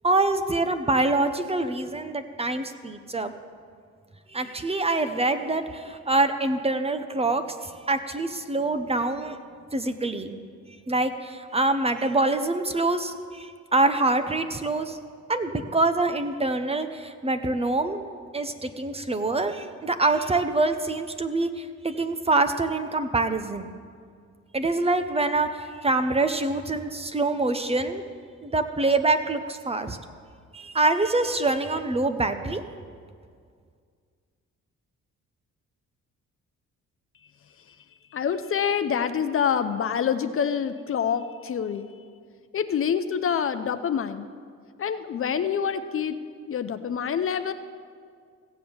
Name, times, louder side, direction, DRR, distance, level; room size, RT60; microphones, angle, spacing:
voice 1, 0.0-3.3 4.3-9.4 9.7-10.3 10.9-15.0 15.3-23.7 24.5-28.0 28.4-30.0 30.5-32.6, right 2 dB, 20° right, 8 dB, 0.8 m, -25 dB
voice 2, 38.1-41.9 42.5-44.3 44.8-46.2 46.5-47.5, left 7 dB, 45° left, 10 dB, 0.7 m, -26 dB
16.0 x 7.7 x 7.0 m, 2.1 s
cardioid pair, 90°, 30 cm